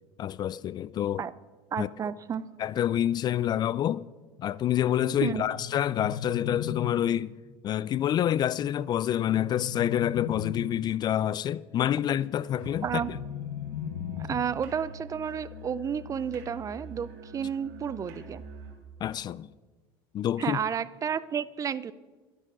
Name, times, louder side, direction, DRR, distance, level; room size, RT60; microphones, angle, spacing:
voice 1, 0.2-1.2 1.8-1.9 2.6-4.0 4.4-7.3 7.6-13.2 19.0-19.5 20.1-20.6, left 11 dB, 35° left, 0.3 m, -27 dB
voice 2, 1.7-2.5 5.2-5.4 12.8-13.1 14.2-18.4 20.4-21.9, right 7 dB, 30° right, 0.5 m, -31 dB
sound 1, 5.4-7.4 9.1-10.9 12.7-14.7, left 9 dB, 80° left, 0.8 m, -37 dB
Musical instrument, 12.5-18.9, right 1 dB, 75° right, 3.3 m, -45 dB
12.5 x 11.0 x 6.1 m
supercardioid pair, 115°, 12 cm